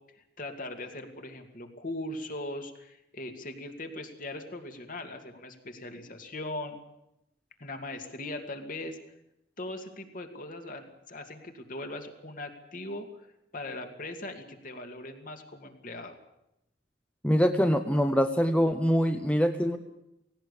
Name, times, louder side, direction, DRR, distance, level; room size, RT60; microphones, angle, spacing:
voice 1, 0.4-6.8 7.6-9.0 9.6-13.1 13.5-16.2, left 2 dB, 50° left, 5 dB, 2.5 m, -39 dB
voice 2, 17.2-19.8, equal, 5° left, 7 dB, 0.8 m, -24 dB
18.0 x 17.5 x 8.5 m, 0.84 s
head